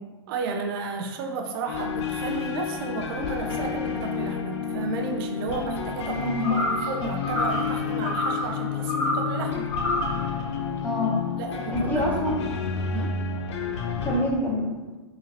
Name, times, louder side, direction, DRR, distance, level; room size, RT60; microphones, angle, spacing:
voice 1, 0.3-6.2 6.6-9.7 11.4-12.1 12.9-13.2, right 4 dB, 55° right, 3 dB, 0.5 m, -33 dB
sound 1, 1.6-14.2, left 6 dB, 80° left, 0.5 m, -30 dB
voice 2, 6.1-6.6 10.8-11.2 11.7-12.5 14.0-14.9, left 1 dB, 10° left, -2 dB, 0.7 m, -27 dB
sound 2, 6.4-6.9 7.2-7.7 8.0-8.4 8.9-9.3 9.7-10.1, left 1 dB, 55° left, 0.9 m, -27 dB
3.8 x 2.8 x 2.8 m, 1.2 s
hypercardioid pair, 125°, 14 cm